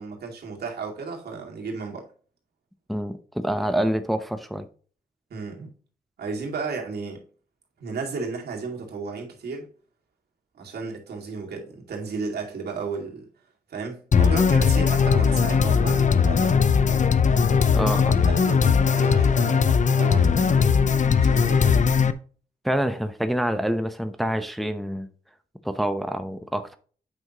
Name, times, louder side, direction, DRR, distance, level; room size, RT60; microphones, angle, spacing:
voice 1, 0.0-2.0 5.3-5.7 6.2-7.2 7.8-9.7 10.6-13.3 13.7-16.6 17.9-20.8 21.2-21.9, right 4 dB, 75° right, 2.2 m, -34 dB
voice 2, 2.9-4.7 17.7-18.2 22.6-25.1 25.6-26.8, equal, ahead, 0.8 m, -26 dB
sound 1, 14.1-22.1, left 6 dB, 50° left, 0.7 m, -19 dB
8.2 x 5.6 x 3.0 m
cardioid pair, 60°, 17 cm